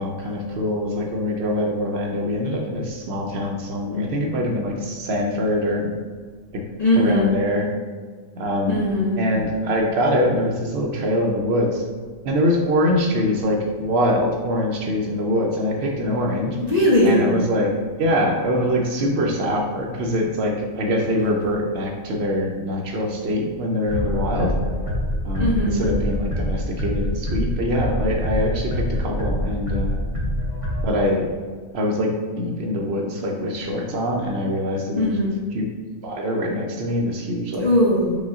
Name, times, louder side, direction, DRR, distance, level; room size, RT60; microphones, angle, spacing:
voice 1, 0.0-5.9 6.5-6.6 6.9-7.7 8.3-8.8 9.2-11.8 12.2-16.6 17.0-17.7 18.0-24.5 25.2-30.0 30.8-31.3 31.7-35.2 35.5-35.6 36.0-37.7, equal, 60° right, 0 dB, 0.7 m, -23 dB
voice 2, 6.8-7.3 8.7-9.2 16.6-17.3 25.4-25.8 35.0-35.4 37.6-38.2, left 1 dB, 65° left, -5 dB, 0.4 m, -19 dB
sound 1, 23.8-30.8, equal, 30° right, 0.8 m, -25 dB
5.1 x 2.2 x 3.6 m, 1.5 s
omnidirectional pair, 1.4 m